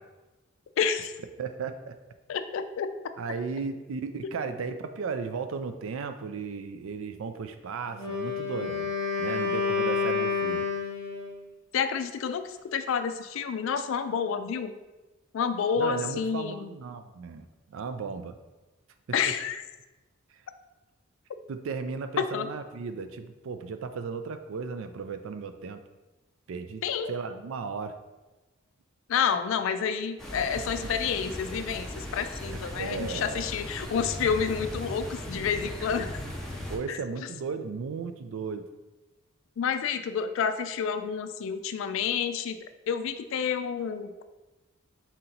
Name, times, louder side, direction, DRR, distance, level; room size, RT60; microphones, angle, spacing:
voice 1, 0.8-1.1 2.3-2.9 11.7-14.7 15.3-16.7 19.1-19.6 22.2-22.5 26.8-27.1 29.1-36.1 36.9-37.3 39.6-42.6 42.9-44.2, left 6 dB, 65° left, 10 dB, 0.3 m, -29 dB
voice 2, 1.4-1.9 3.2-8.9 9.2-10.6 15.8-18.3 19.3-19.4 21.5-25.8 26.5-26.8 27.1-28.0 32.5-33.4 36.7-38.7, right 5 dB, 70° right, 9 dB, 0.4 m, -35 dB
Wind instrument woodwind instrument, 7.9-11.4, left 5 dB, 20° left, 1.1 m, -29 dB
sound 1, 30.2-36.8, left 1 dB, ahead, 0.5 m, -38 dB
4.3 x 2.8 x 3.9 m, 1.1 s
head